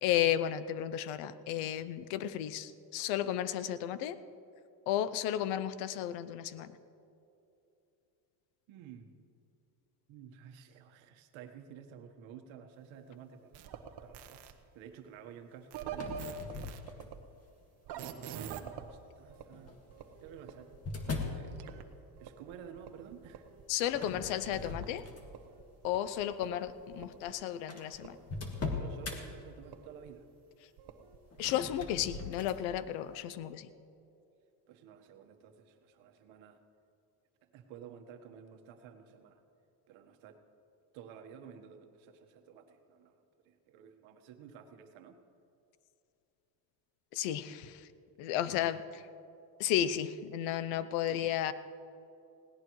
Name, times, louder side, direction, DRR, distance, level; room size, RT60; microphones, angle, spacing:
voice 1, 0.0-4.2 4.9-6.7 23.7-25.0 25.8-28.2 31.4-33.7 47.1-47.9 48.2-49.0 49.6-51.5, left 11 dB, 90° left, 15 dB, 0.8 m, -33 dB
voice 2, 8.7-9.1 10.1-16.7 17.9-19.8 20.2-20.7 21.3-21.6 22.2-23.4 23.9-24.3 28.8-30.3 33.3-33.4 34.7-36.6 37.5-39.4 39.9-40.4 40.9-43.1 43.4-45.2 48.2-48.4, right 8 dB, 75° right, 6 dB, 1.4 m, -52 dB
sound 1, 13.5-14.5 15.7-17.2 17.9-18.9 19.3-21.8 22.2-24.9 25.2-27.3 27.9-30.1 30.8-31.7, right 7 dB, 55° right, 1.2 m, -46 dB
sound 2, 15.9-17.3 18.0-18.4 19.5-21.5 23.9-25.5 26.0-26.2 27.0-27.1 27.2-27.3 27.7-29.2 31.3-32.6, left 4 dB, 30° left, 1.9 m, -40 dB
20.0 x 17.0 x 3.1 m, 2.7 s
cardioid pair, 115°, 47 cm